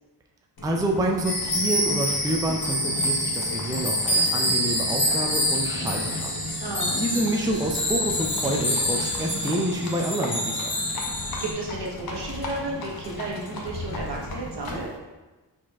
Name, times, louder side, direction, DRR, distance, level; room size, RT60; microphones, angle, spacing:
Livestock farm animals working animals, 0.6-15.0, left 2 dB, 55° left, 1.0 m, -36 dB
voice 1, 0.6-6.3 7.0-10.7, right 1 dB, 10° right, 1 dB, 0.5 m, -28 dB
sound 1, 1.2-11.5, equal, 25° left, 1.1 m, -27 dB
voice 2, 6.6-6.9 11.4-14.9, right 2 dB, 60° right, -3 dB, 1.3 m, -33 dB
4.5 x 4.2 x 2.4 m, 1.2 s
cardioid pair, 55°, 45 cm